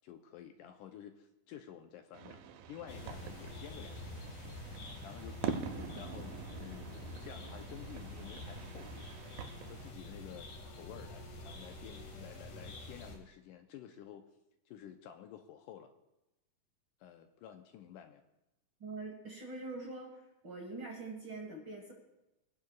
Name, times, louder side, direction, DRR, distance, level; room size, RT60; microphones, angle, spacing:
voice 1, 0.0-4.3 5.0-5.4 5.7-9.1 9.7-14.3 14.7-15.9 17.0-18.2, left 10 dB, 80° left, 6 dB, 2.1 m, -51 dB
sound 1, 2.1-9.9, right 7 dB, 85° right, 2.4 m, -45 dB
sound 2, 2.9-13.2, left 1 dB, 60° left, 3.0 m, -47 dB
voice 2, 18.8-20.1 20.4-21.9, right 3 dB, 45° right, -1 dB, 1.8 m, -43 dB
21.5 x 10.5 x 2.4 m, 0.94 s
omnidirectional pair, 4.0 m